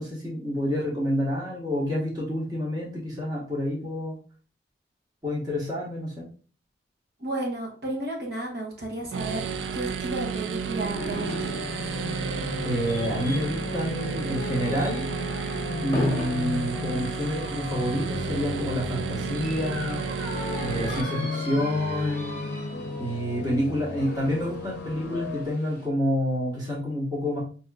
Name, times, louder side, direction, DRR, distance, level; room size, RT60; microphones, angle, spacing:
voice 1, 0.0-4.2 5.2-6.3 12.6-15.0 15.8-20.0 20.6-22.4 23.0-27.4, equal, 20° right, -6 dB, 1.1 m, -28 dB
voice 2, 7.2-9.5 9.7-11.5, right 1 dB, 60° right, -2 dB, 1.1 m, -32 dB
sound 1, 9.1-21.0, right 5 dB, 85° right, 0.3 m, -32 dB
sound 2, 9.6-25.9, equal, 10° left, 1.0 m, -40 dB
sound 3, 11.0-25.5, left 3 dB, 90° left, 0.5 m, -36 dB
5.2 x 2.9 x 2.2 m, 0.39 s
head